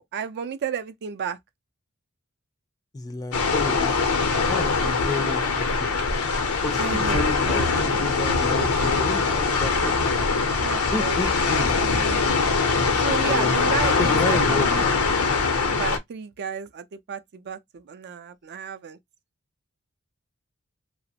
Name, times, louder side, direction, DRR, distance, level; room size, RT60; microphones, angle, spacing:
voice 1, 0.0-1.4 6.8-8.0 10.6-11.2 11.6-12.3 12.9-14.8 15.7-19.0, right 7 dB, 50° right, 0.4 m, -33 dB
voice 2, 2.9-3.9 4.5-6.1 6.6-9.9 10.9-11.8 13.3-13.6 14.0-14.7, left 2 dB, 15° left, 0.3 m, -31 dB
sound 1, 3.3-16.0, left 4 dB, 90° left, 0.6 m, -22 dB
2.9 x 2.0 x 2.7 m
head